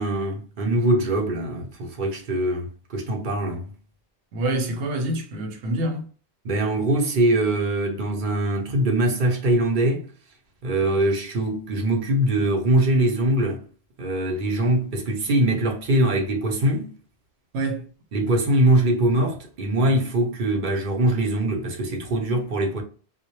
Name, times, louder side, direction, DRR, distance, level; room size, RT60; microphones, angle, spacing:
voice 1, 0.0-3.7 6.4-10.1 10.6-13.6 14.0-16.9 18.1-22.8, right 1 dB, 55° right, 0.7 m, -22 dB
voice 2, 4.3-6.0 17.5-17.9, right 1 dB, 90° right, 0.9 m, -26 dB
2.1 x 2.0 x 2.8 m
omnidirectional pair, 1.1 m